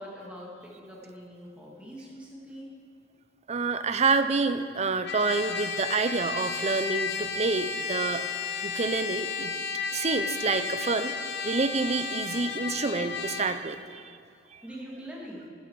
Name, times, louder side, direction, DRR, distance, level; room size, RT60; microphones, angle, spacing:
voice 1, 0.0-2.7 14.6-15.4, equal, 5° right, -4 dB, 2.1 m, -43 dB
voice 2, 3.5-8.3 8.6-9.5 9.9-11.1 11.4-14.2 14.5-14.6, right 4 dB, 35° right, 11 dB, 0.5 m, -28 dB
Trumpet, 5.0-13.6, left 5 dB, 55° left, 0.8 m, -33 dB
12.0 x 10.5 x 4.7 m, 2.3 s
head